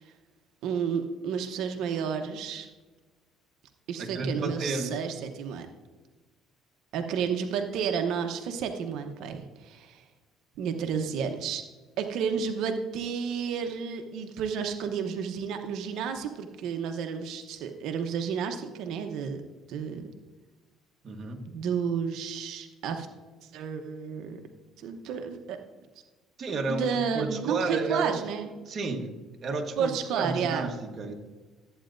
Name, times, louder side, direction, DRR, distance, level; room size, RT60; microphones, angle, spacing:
voice 1, 0.6-2.7 3.9-5.7 6.9-10.0 10.6-11.6 12.0-19.4 19.7-20.1 21.5-23.1 23.5-24.4 24.8-25.6 26.7-28.5 29.8-30.7, right 7 dB, 75° right, 5 dB, 0.8 m, -31 dB
voice 2, 4.0-5.0 21.0-21.5 26.4-28.3 28.7-29.1 29.4-31.1, right 3 dB, 45° right, 3 dB, 1.3 m, -32 dB
13.5 x 8.7 x 2.6 m, 1.2 s
cardioid pair, 105°, 0 cm